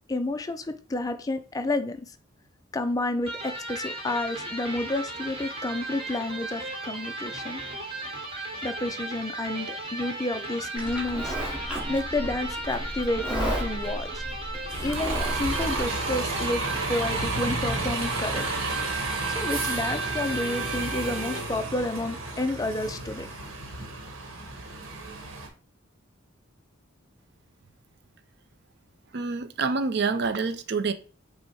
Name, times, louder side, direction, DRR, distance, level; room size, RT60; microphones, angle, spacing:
voice 1, 0.1-2.2 2.7-7.6 8.6-11.4 11.9-14.2 14.8-16.6 16.9-18.5 19.3-23.5, left 2 dB, 15° left, 0.3 m, -30 dB
Electric guitar, 3.2-21.6, right 2 dB, 25° right, 1.1 m, -36 dB
Livestock farm animals working animals, 10.8-15.8, equal, 5° right, 1.2 m, -33 dB
Bus, 14.7-25.5, right 3 dB, 85° right, 1.1 m, -32 dB
voice 2, 29.1-30.9, right 4 dB, 55° right, 0.5 m, -27 dB
5.4 x 2.1 x 4.5 m
head